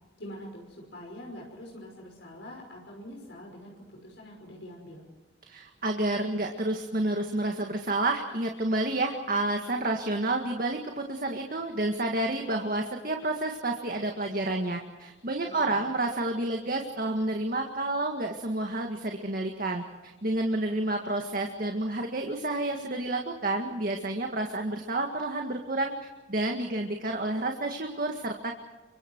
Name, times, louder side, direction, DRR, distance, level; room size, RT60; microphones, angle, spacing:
voice 1, 0.2-5.0 15.4-15.8, left 1 dB, 70° left, -1 dB, 5.8 m, -45 dB
voice 2, 5.4-25.9 26.3-28.6, right 2 dB, 50° right, 3 dB, 1.9 m, -30 dB
29.5 x 24.5 x 4.7 m, 1.2 s
head